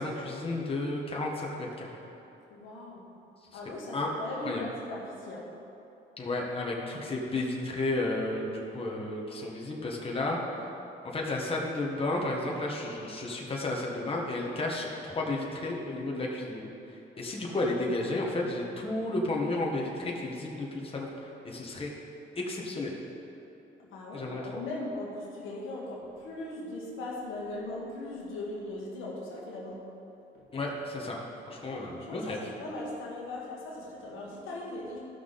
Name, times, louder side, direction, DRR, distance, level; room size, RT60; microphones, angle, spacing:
voice 1, 0.0-2.0 3.9-4.1 4.4-4.6 6.2-10.4 11.0-16.7 17.2-21.9 22.3-22.9 24.1-24.4 30.5-31.2 31.5-32.4, left 2 dB, 30° left, -2 dB, 1.6 m, -32 dB
voice 2, 2.5-3.1 3.5-5.5 23.8-29.9 30.3-30.5 31.7-35.0, left 2 dB, 85° left, -3 dB, 1.8 m, -39 dB
14.5 x 6.0 x 4.2 m, 2.9 s
cardioid pair, 90°, 20 cm